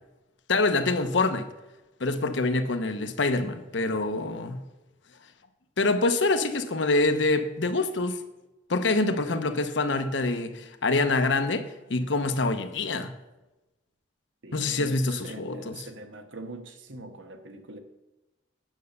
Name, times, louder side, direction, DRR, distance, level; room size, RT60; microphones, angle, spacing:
voice 1, 0.5-1.5 2.0-4.6 5.8-8.2 8.7-13.1 14.5-15.9, left 3 dB, 75° left, 0.9 m, -26 dB
voice 2, 14.4-17.8, right 2 dB, 85° right, 1.2 m, -43 dB
9.2 x 6.6 x 6.7 m
head